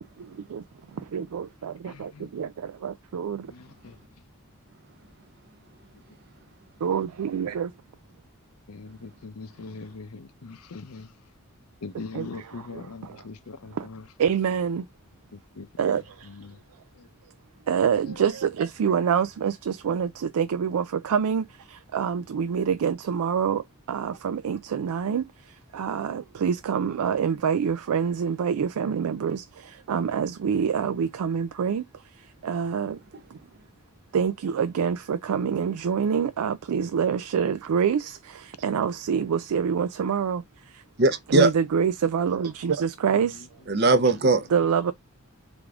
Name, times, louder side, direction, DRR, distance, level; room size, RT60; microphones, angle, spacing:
voice 1, 0.2-0.6 0.9-3.5 6.8-7.7 12.1-13.3 13.7-13.9 14.2-14.9 15.8-16.3 17.7-31.8 32.1-33.0 33.3-33.4 34.1-40.8 41.3-43.5 44.5-44.9, right 7 dB, 90° right, 0.4 m, -26 dB
voice 2, 1.8-2.3 3.5-4.0 8.7-11.1 11.8-14.0 15.3-16.0 16.3-16.6 17.0-17.1 18.1-18.2 43.2-43.4, left 4 dB, 80° left, 0.7 m, -41 dB
voice 3, 41.0-41.5 43.7-44.5, right 3 dB, 45° right, 0.6 m, -19 dB
3.6 x 3.5 x 3.5 m
head